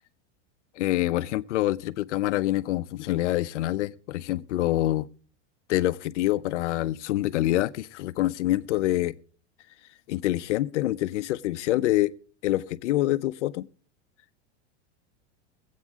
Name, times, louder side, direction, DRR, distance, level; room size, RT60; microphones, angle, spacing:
voice 1, 0.8-5.1 5.7-9.1 10.1-12.1 12.4-13.7, left 15 dB, 85° left, 0.8 m, -26 dB
23.0 x 8.6 x 3.6 m
supercardioid pair, 170°, 35 cm